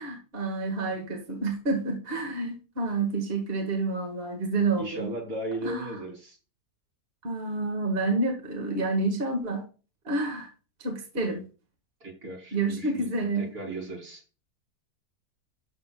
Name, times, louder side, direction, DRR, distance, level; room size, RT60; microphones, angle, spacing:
voice 1, 0.0-5.1 5.6-5.9 7.2-9.6 10.1-10.5 10.8-11.4 12.5-13.5, right 3 dB, 35° right, 2 dB, 1.9 m, -29 dB
voice 2, 4.8-6.4 11.2-11.4 12.0-14.2, right 1 dB, 70° right, -1 dB, 3.9 m, -37 dB
12.5 x 6.8 x 2.3 m, 0.34 s
omnidirectional pair, 1.6 m